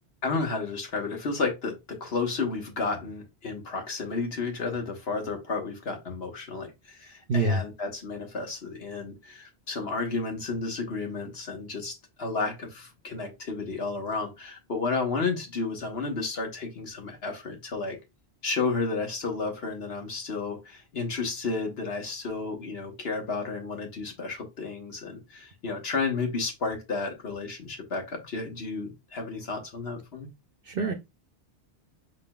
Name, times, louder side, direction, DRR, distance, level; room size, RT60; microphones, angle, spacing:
voice 1, 0.2-18.0 18.4-30.3, left 4 dB, 65° left, 1.6 m, -32 dB
voice 2, 7.3-7.6 30.7-30.9, right 2 dB, 60° right, 0.8 m, -25 dB
6.1 x 3.7 x 2.3 m
omnidirectional pair, 1.1 m